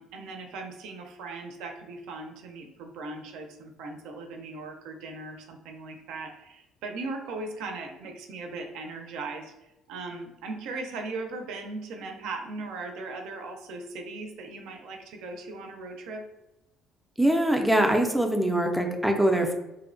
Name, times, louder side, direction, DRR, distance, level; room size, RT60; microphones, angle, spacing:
voice 1, 0.0-9.5 9.9-16.2, right 3 dB, 85° right, 4 dB, 0.4 m, -38 dB
voice 2, 17.2-19.5, right 1 dB, ahead, 3 dB, 0.3 m, -23 dB
2.6 x 2.0 x 2.5 m, 0.94 s
cardioid pair, 135°, 0 cm